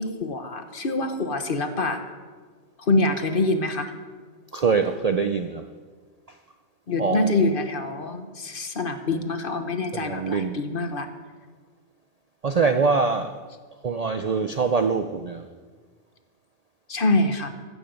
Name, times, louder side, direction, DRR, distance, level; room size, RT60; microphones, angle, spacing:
voice 1, 0.0-2.0 2.8-3.9 6.9-11.1 16.9-17.5, left 2 dB, 45° left, 8 dB, 1.2 m, -25 dB
voice 2, 4.5-5.6 7.0-7.4 9.9-10.6 12.4-13.3 13.8-15.4, right 5 dB, 45° right, 8 dB, 0.5 m, -23 dB
15.0 x 14.0 x 5.2 m, 1.5 s
omnidirectional pair, 1.3 m